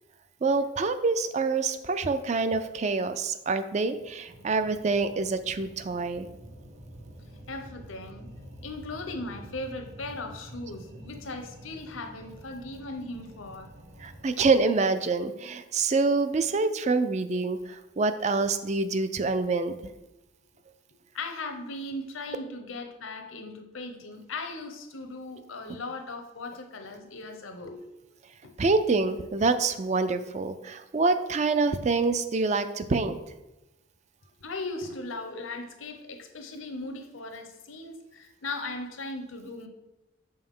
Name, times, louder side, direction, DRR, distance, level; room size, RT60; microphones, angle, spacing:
voice 1, 0.4-6.3 14.0-19.8 28.6-33.2, right 3 dB, 35° right, 11 dB, 0.4 m, -26 dB
sound 1, 4.3-14.3, equal, 55° right, 1.4 m, -47 dB
voice 2, 7.5-8.3 8.6-13.7 14.3-14.4 21.1-27.9 28.4-28.5 34.4-39.7, left 2 dB, 85° left, 6 dB, 0.9 m, -38 dB
6.9 x 5.5 x 3.7 m, 0.99 s
head